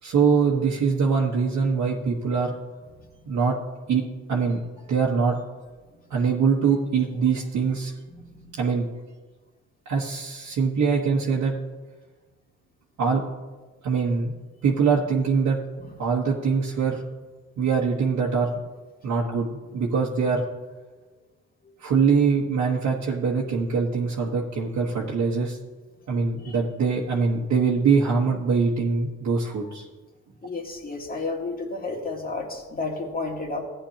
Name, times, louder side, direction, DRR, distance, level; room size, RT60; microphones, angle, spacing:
voice 1, 0.0-2.5 3.3-3.6 3.9-4.0 4.3-4.6 4.9-5.4 6.1-7.9 8.5-8.8 9.8-11.5 13.0-13.2 13.8-14.3 14.6-15.6 16.0-17.0 17.6-18.5 19.0-20.4 21.8-25.6 26.1-29.9, right 5 dB, 70° right, -4 dB, 1.4 m, -23 dB
voice 2, 8.1-8.5 15.8-15.9 26.4-26.6 30.4-33.6, left 3 dB, 30° left, 0 dB, 2.1 m, -32 dB
14.5 x 9.5 x 2.9 m, 1.3 s
cardioid pair, 90°, 30 cm